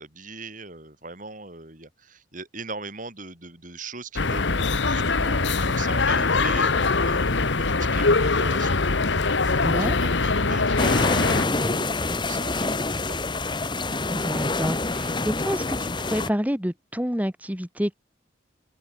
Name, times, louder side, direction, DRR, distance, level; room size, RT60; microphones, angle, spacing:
voice 1, 0.0-9.0 9.3-13.4, right 3 dB, 40° right, 7.5 m, -40 dB
sound 1, 4.2-11.5, left 3 dB, 65° left, 1.3 m, -22 dB
voice 2, 9.6-10.0 14.1-18.0, equal, 10° right, 3.7 m, -28 dB
sound 2, 10.8-16.3, left 3 dB, 25° left, 1.2 m, -26 dB
open air
head